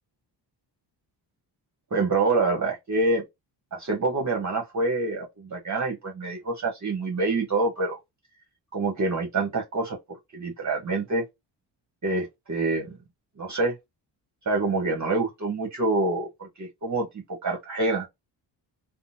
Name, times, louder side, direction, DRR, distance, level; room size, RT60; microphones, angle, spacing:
voice 1, 1.9-3.2 3.7-8.0 8.7-11.2 12.0-13.0 13.4-13.7 14.5-18.1, right 3 dB, 40° right, 1.0 m, -26 dB
3.6 x 2.0 x 2.7 m
cardioid pair, 95°, 43 cm